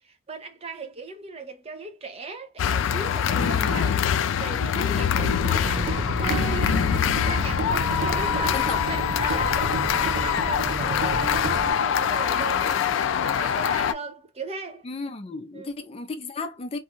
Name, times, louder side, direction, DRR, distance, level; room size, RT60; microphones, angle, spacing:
voice 1, 0.1-6.9 7.3-12.9 13.2-14.9 15.5-15.7, right 4 dB, 35° right, 0.6 m, -38 dB
sound 1, 2.6-13.9, left 8 dB, 90° left, 0.3 m, -24 dB
voice 2, 3.3-3.9 8.5-8.9 14.8-16.8, left 3 dB, 30° left, 0.5 m, -34 dB
sound 2, 5.2-11.7, right 3 dB, 75° right, 0.5 m, -31 dB
2.6 x 2.3 x 2.8 m
head